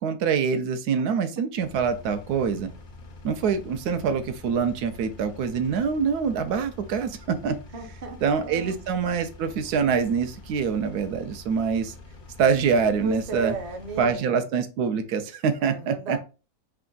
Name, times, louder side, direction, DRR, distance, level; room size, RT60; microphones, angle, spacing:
voice 1, 0.0-2.7 3.2-7.6 8.2-11.9 12.4-13.5 14.0-16.2, right 6 dB, 80° right, 8 dB, 1.1 m, -25 dB
Engine, 1.5-14.2, left 2 dB, 70° left, 0.5 m, -45 dB
voice 2, 7.7-8.8 13.0-14.5 15.6-16.2, right 3 dB, 45° right, 3 dB, 0.5 m, -35 dB
3.4 x 2.3 x 3.7 m, 0.31 s
omnidirectional pair, 1.7 m